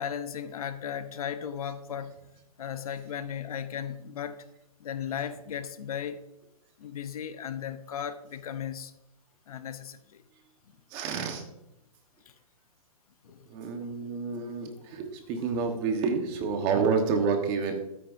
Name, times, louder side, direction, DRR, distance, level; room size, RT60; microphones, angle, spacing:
voice 1, 0.0-2.1 2.6-4.4 4.8-6.2 6.8-8.9 9.5-10.2 13.2-13.5 13.8-13.9, left 8 dB, 75° left, 0.9 m, -36 dB
voice 2, 10.9-11.4 13.5-17.8, right 5 dB, 30° right, 1.3 m, -29 dB
13.0 x 8.8 x 2.7 m
hypercardioid pair, 150°, 19 cm